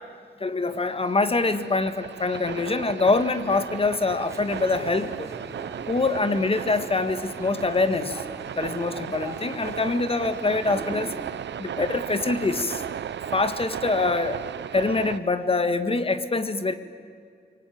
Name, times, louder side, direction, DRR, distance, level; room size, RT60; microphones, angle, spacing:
voice 1, 0.4-5.3 5.9-8.2 8.6-11.1 11.6-12.8 13.3-14.4 14.7-16.7, left 3 dB, 30° left, 10 dB, 1.8 m, -24 dB
sound 1, 0.6-15.2, right 9 dB, 90° right, 0.8 m, -35 dB
sound 2, 4.1-11.3, right 2 dB, 15° right, 4.7 m, -42 dB
26.5 x 24.0 x 9.5 m, 2.3 s
wide cardioid pair, 115°, 18 cm